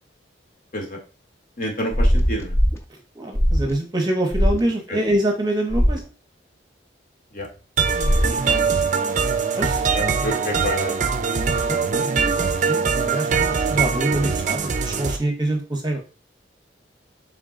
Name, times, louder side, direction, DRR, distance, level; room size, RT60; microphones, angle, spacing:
voice 1, 1.6-2.6 4.9-5.0 7.3-7.5 8.2-8.6 9.9-10.9, left 1 dB, 45° left, 0 dB, 1.2 m, -29 dB
sound 1, 1.9-2.8 3.3-3.7 4.3-4.6 5.7-6.0 8.0-8.4, equal, 15° left, 0.4 m, -19 dB
voice 2, 3.1-6.0 9.6-9.8 11.7-16.0, right 1 dB, 20° right, 3 dB, 0.8 m, -25 dB
sound 2, 7.8-15.2, right 5 dB, 40° right, 0.5 m, -22 dB
3.7 x 3.6 x 3.7 m, 0.34 s
head